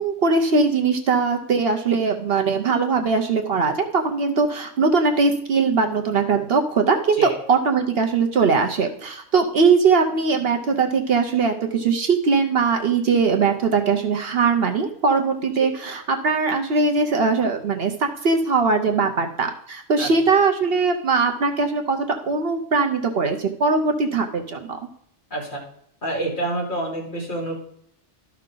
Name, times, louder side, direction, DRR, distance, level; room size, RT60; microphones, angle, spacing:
voice 1, 0.0-24.8, right 4 dB, 60° right, 4 dB, 1.0 m, -21 dB
voice 2, 26.0-27.6, right 2 dB, 45° left, -2 dB, 2.3 m, -27 dB
12.5 x 5.8 x 3.8 m, 0.70 s
omnidirectional pair, 1.2 m